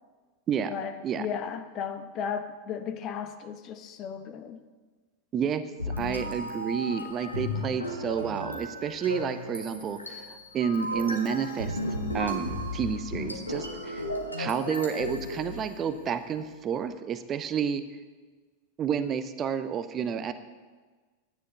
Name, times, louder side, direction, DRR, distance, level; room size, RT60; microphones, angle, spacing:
voice 1, 0.7-4.6, left 7 dB, 35° left, 8 dB, 1.0 m, -35 dB
voice 2, 5.3-5.6 6.0-11.8 12.1-14.0 14.4-17.8 18.8-20.3, right 7 dB, 25° right, 11 dB, 0.7 m, -30 dB
sound 1, 5.8-16.1, left 1 dB, 85° left, 1.5 m, -35 dB
10.5 x 9.8 x 6.7 m, 1.4 s
figure-of-eight pair, 90°, 0 cm